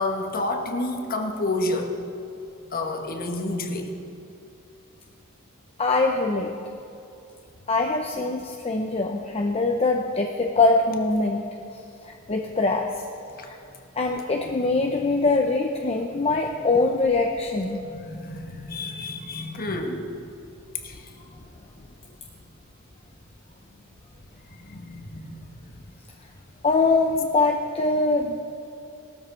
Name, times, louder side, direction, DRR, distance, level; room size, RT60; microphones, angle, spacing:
voice 1, 0.0-1.9 2.7-3.9 13.4-13.5 14.4-14.6 17.8-20.1 20.7-21.4 24.3-25.6, left 2 dB, 45° left, 4 dB, 1.4 m, -30 dB
voice 2, 5.8-6.5 7.7-11.4 12.3-12.9 13.5-13.6 14.0-17.8 26.6-28.4, left 3 dB, 30° left, 2 dB, 0.7 m, -23 dB
17.5 x 13.0 x 4.5 m, 2.7 s
head